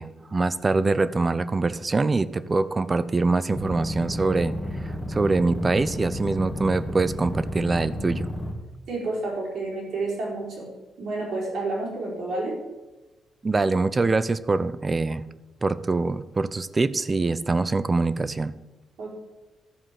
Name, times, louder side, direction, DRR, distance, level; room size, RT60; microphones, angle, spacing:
voice 1, 0.0-4.5 4.8-8.3 13.4-15.2 15.6-18.5, right 3 dB, 25° right, 15 dB, 0.6 m, -24 dB
sound 1, 3.5-8.5, left 1 dB, 5° left, 2.2 m, -32 dB
voice 2, 8.9-10.7 11.0-12.6 19.0-19.1, right 2 dB, 70° right, -3 dB, 4.6 m, -30 dB
12.5 x 5.0 x 7.5 m, 1.1 s
cardioid pair, 90°, 0 cm